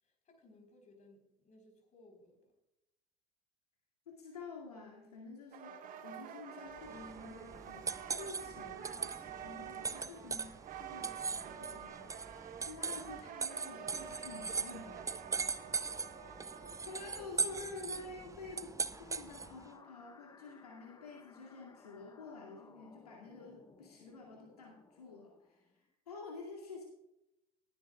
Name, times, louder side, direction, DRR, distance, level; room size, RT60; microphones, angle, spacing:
voice 1, 0.0-2.5 16.0-17.0, left 2 dB, 40° left, 4.0 m, -63 dB
voice 2, 4.1-15.2 16.8-25.6 26.1-26.8, left 3 dB, 80° left, 2.3 m, -49 dB
sound 1, 5.5-17.3, right 8 dB, 45° right, 1.6 m, -48 dB
sound 2, 6.8-19.6, right 5 dB, 15° right, 0.6 m, -40 dB
sound 3, 13.2-25.8, left 4 dB, 20° left, 1.0 m, -61 dB
19.5 x 9.2 x 2.3 m
figure-of-eight pair, 65°, 19 cm